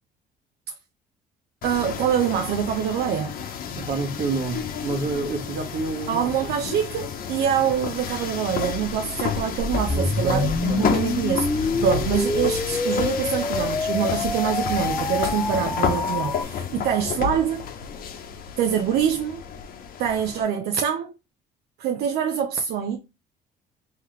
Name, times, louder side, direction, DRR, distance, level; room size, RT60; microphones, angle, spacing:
sound 1, 1.6-20.4, left 7 dB, 60° left, 0.9 m, -31 dB
voice 1, 1.6-3.3 6.1-17.6 18.6-19.4 20.0-21.1 21.8-23.0, right 8 dB, 75° right, 0.6 m, -25 dB
voice 2, 3.7-6.5 9.8-10.8, right 4 dB, 55° right, 1.5 m, -29 dB
sound 2, 9.6-16.4, left 3 dB, 15° left, 0.4 m, -27 dB
3.8 x 3.2 x 3.1 m
cardioid pair, 110°, 17 cm